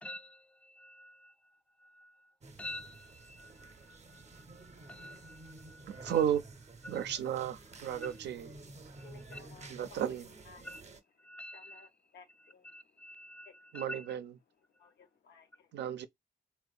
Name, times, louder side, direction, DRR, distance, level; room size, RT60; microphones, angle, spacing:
voice 1, 0.0-2.3 2.6-6.2 6.8-7.0 8.0-8.2 9.0-9.4 10.6-10.8 11.2-11.9 12.4-14.2, left 1 dB, 5° left, 0.3 m, -49 dB
sound 1, 2.4-11.0, right 2 dB, 40° right, 0.6 m, -52 dB
voice 2, 5.9-6.4 6.9-8.5 9.7-10.3 13.7-14.3 15.7-16.1, right 9 dB, 80° right, 0.4 m, -33 dB
voice 3, 9.0-10.2 10.5-10.7 11.5-12.7 13.4-13.5 13.9-14.0 14.8-15.7, left 5 dB, 80° left, 0.7 m, -57 dB
2.8 x 2.1 x 2.3 m
cardioid pair, 65°, 18 cm